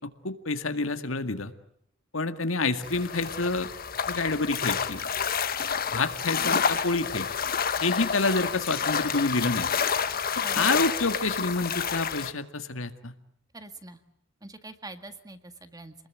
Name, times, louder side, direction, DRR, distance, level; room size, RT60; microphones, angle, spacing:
voice 1, 0.0-1.5 2.1-3.7 4.1-5.1 5.9-7.3 7.8-9.7 10.6-13.1, left 3 dB, 80° left, 9 dB, 1.9 m, -28 dB
sound 1, 2.8-12.3, left 7 dB, 50° left, 1.3 m, -29 dB
voice 2, 10.4-10.8 13.5-14.0 14.4-15.9, right 2 dB, 20° right, 9 dB, 1.8 m, -44 dB
28.0 x 20.5 x 9.3 m, 0.74 s
head